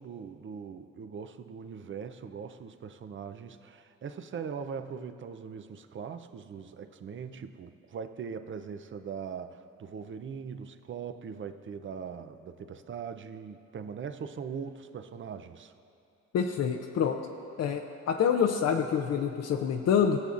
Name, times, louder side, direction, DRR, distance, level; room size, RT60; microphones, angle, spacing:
voice 1, 0.0-15.7, right 6 dB, 40° right, 9 dB, 0.6 m, -41 dB
voice 2, 16.3-17.2 17.6-20.2, left 7 dB, 55° left, 3 dB, 0.6 m, -27 dB
20.5 x 6.9 x 2.5 m, 2.7 s
cardioid pair, 90°, 30 cm